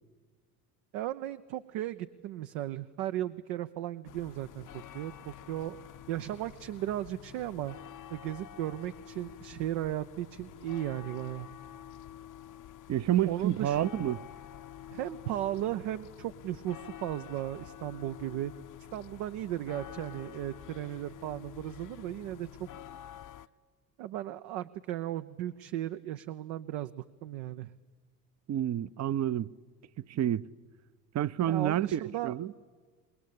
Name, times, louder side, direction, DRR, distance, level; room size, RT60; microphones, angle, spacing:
voice 1, 0.9-5.8 6.1-7.8 8.1-11.5 13.2-13.8 14.9-18.5 18.9-22.7 24.0-27.7 31.5-32.4, right 13 dB, 70° right, 0.8 m, -36 dB
sound 1, 4.0-23.5, left 11 dB, 45° left, 0.7 m, -48 dB
voice 2, 12.9-14.2 28.5-29.5 30.1-30.5 31.1-32.5, right 11 dB, 35° right, 0.6 m, -29 dB
25.5 x 21.0 x 8.6 m
hypercardioid pair, 65°, 44 cm